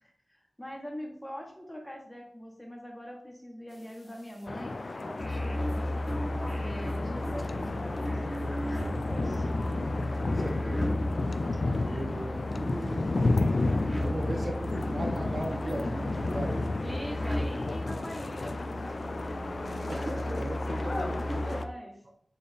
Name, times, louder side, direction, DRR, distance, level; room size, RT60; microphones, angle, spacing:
voice 1, 0.0-5.8 6.6-9.5 13.9-14.0 16.8-19.0 20.9-21.9, equal, 10° left, 0 dB, 1.4 m, -43 dB
sound 1, 4.5-21.7, left 2 dB, 65° left, 0.3 m, -32 dB
sound 2, 5.2-21.6, left 1 dB, 10° right, 1.3 m, -34 dB
voice 2, 10.2-11.0 11.4-13.5 14.0-16.8 17.3-17.4 19.9-21.6, right 1 dB, 60° right, 1 dB, 0.8 m, -38 dB
4.3 x 3.4 x 3.5 m, 0.64 s
cardioid pair, 45°, 0 cm